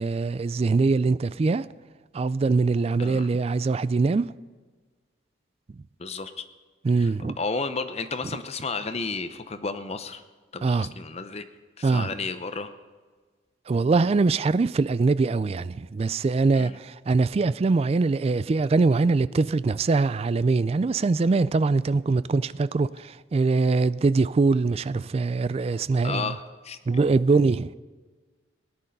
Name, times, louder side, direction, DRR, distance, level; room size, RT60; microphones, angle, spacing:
voice 1, 0.0-1.7 2.1-4.3 6.8-7.4 10.6-10.9 11.8-12.1 13.7-26.4 26.9-27.7, right 3 dB, 35° right, 0.3 m, -23 dB
voice 2, 6.0-6.4 7.0-7.1 7.4-10.2 10.5-11.5 11.8-12.7 16.6-16.8 26.0-26.8, left 4 dB, 35° left, 0.7 m, -32 dB
17.5 x 10.0 x 5.3 m
head